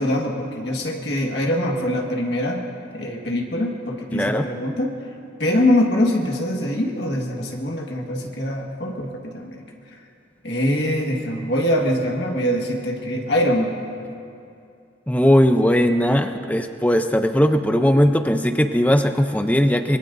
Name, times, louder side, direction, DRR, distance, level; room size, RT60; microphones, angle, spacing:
voice 1, 0.0-2.6 2.9-5.0 5.4-9.6 9.9-10.0 10.4-13.8, left 1 dB, 65° left, 0 dB, 1.7 m, -23 dB
voice 2, 4.1-4.5 15.1-20.0, equal, 10° left, 7 dB, 0.6 m, -18 dB
24.0 x 22.0 x 2.7 m, 2.5 s
head